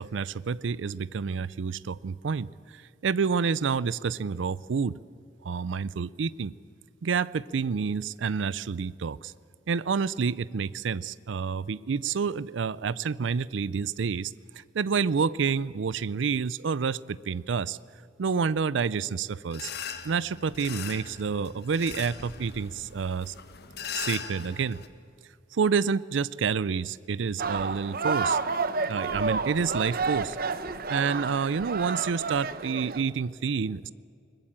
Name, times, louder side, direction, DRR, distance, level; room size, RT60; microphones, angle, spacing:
voice 1, 0.0-5.0 5.4-6.5 7.0-9.3 9.7-17.8 18.2-19.7 20.0-23.3 24.0-24.8 25.5-28.4 28.9-30.4 30.9-33.9, right 5 dB, 75° right, 19 dB, 0.5 m, -29 dB
sound 1, 19.5-24.9, left 7 dB, 55° left, 1.6 m, -39 dB
sound 2, 27.4-33.0, right 4 dB, 50° right, 1.0 m, -30 dB
22.0 x 20.5 x 8.7 m, 2.5 s
head